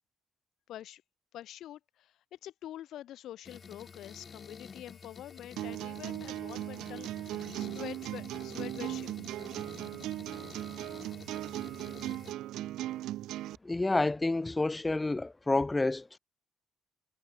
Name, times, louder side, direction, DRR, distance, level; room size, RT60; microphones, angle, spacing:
voice 1, 0.7-1.0 1.3-9.1, left 12 dB, 75° left, 2.6 m, -46 dB
sound 1, 3.4-12.3, left 6 dB, 50° left, 6.9 m, -50 dB
sound 2, 5.6-13.6, right 14 dB, 80° right, 0.9 m, -38 dB
voice 2, 13.6-16.2, left 2 dB, 20° left, 0.5 m, -29 dB
hypercardioid pair, 50°, 0 cm